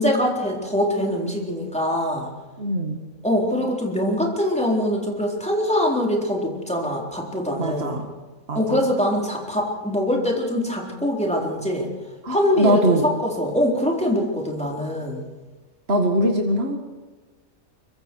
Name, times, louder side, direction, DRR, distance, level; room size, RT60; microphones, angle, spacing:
voice 1, 0.0-2.3 3.2-8.0 8.5-11.9 12.3-15.2, left 1 dB, 5° left, -1 dB, 4.0 m, -23 dB
voice 2, 2.6-3.0 7.6-8.1 8.5-8.8 12.2-13.1 15.9-16.8, right 1 dB, 45° right, 3 dB, 2.2 m, -22 dB
24.5 x 23.5 x 4.7 m, 1.2 s
omnidirectional pair, 1.5 m